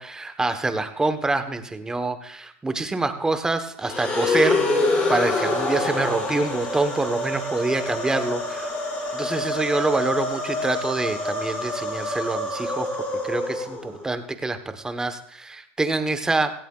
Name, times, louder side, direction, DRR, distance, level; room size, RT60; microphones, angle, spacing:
voice 1, 0.0-8.7 9.1-12.9 13.2-16.5, right 3 dB, 10° right, 9 dB, 1.1 m, -26 dB
sound 1, 3.8-14.0, left 2 dB, 25° left, 5.3 m, -26 dB
17.5 x 15.5 x 2.4 m, 0.68 s
supercardioid pair, 120°, 6 cm